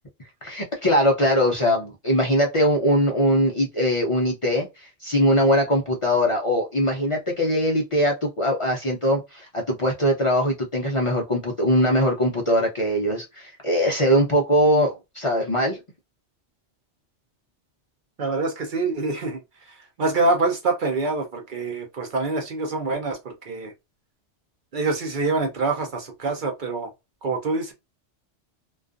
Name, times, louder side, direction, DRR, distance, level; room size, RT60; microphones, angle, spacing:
voice 1, 0.4-15.8, equal, 55° left, 0.3 m, -21 dB
voice 2, 18.2-23.7 24.7-26.9 27.2-27.7, right 3 dB, 55° right, 0.7 m, -26 dB
2.4 x 2.3 x 2.4 m
omnidirectional pair, 1.2 m